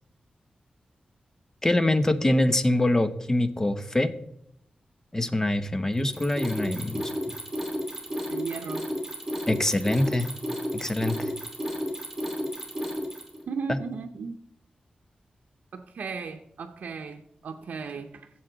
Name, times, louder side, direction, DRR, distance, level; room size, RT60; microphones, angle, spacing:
voice 1, 1.6-4.1 5.1-7.4 9.5-10.3 10.7-11.3 13.7-13.8, left 1 dB, 20° left, 11 dB, 0.8 m, -24 dB
Mechanisms, 6.0-13.4, equal, 15° right, 2.8 m, -32 dB
voice 2, 8.3-8.9 13.5-14.4 15.7-18.3, right 5 dB, 85° right, 4 dB, 0.6 m, -36 dB
14.0 x 7.6 x 3.9 m, 0.75 s
wide cardioid pair, 105°, 3 cm